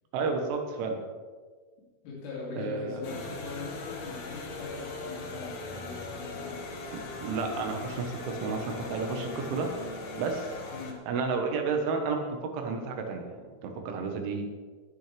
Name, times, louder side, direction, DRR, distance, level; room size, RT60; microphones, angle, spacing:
voice 1, 0.1-1.0 2.6-3.0 6.9-9.7 10.2-10.6 11.1-12.2 12.5-14.4, right 4 dB, 75° right, 3 dB, 3.7 m, -31 dB
voice 2, 2.0-6.6 10.7-11.0, left 3 dB, 85° left, -7 dB, 5.4 m, -41 dB
sound 1, 3.0-10.9, left 3 dB, 70° left, 1.7 m, -40 dB
21.5 x 9.6 x 3.5 m, 1.5 s
omnidirectional pair, 5.7 m